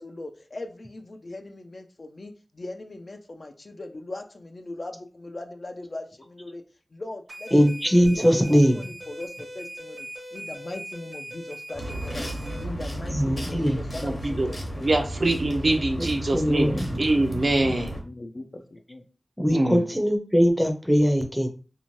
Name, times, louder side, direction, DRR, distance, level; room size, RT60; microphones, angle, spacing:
voice 1, 0.0-6.6 6.9-7.5 8.1-12.3 12.6-14.9 15.4-15.8 17.4-19.0, left 2 dB, 55° left, 0.4 m, -39 dB
sound 1, 7.3-12.6, equal, 80° right, 1.1 m, -40 dB
voice 2, 7.5-8.8 13.1-13.8 16.3-17.0 19.4-21.5, equal, ahead, 0.5 m, -21 dB
sound 2, 11.7-18.0, right 1 dB, 35° left, 0.8 m, -34 dB
voice 3, 14.0-14.5 14.8-16.7 17.0-17.9 19.5-19.8, right 2 dB, 65° right, 0.5 m, -24 dB
2.6 x 2.1 x 3.0 m
wide cardioid pair, 70°, 0 cm